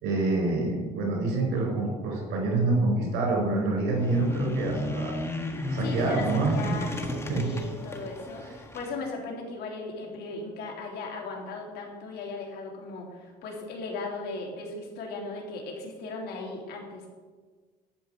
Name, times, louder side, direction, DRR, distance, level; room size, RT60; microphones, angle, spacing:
voice 1, 0.0-5.1 5.7-6.7 7.3-7.5, right 2 dB, 90° right, 0 dB, 4.5 m, -26 dB
sound 1, 3.9-8.9, left 1 dB, 15° left, 1.7 m, -33 dB
voice 2, 5.8-17.1, left 3 dB, 75° left, 0 dB, 3.2 m, -37 dB
12.0 x 5.4 x 9.0 m, 1.4 s
cardioid pair, 110°, 17 cm